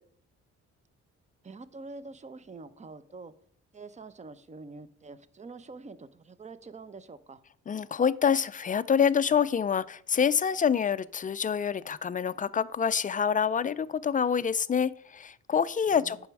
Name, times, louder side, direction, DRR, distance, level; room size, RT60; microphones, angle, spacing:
voice 1, 1.4-3.3 3.7-7.4 15.9-16.2, right 3 dB, 25° right, 15 dB, 0.6 m, -46 dB
voice 2, 7.7-16.3, left 7 dB, 30° left, 17 dB, 0.4 m, -26 dB
8.8 x 6.1 x 4.7 m, 0.64 s
cardioid pair, 90°, 30 cm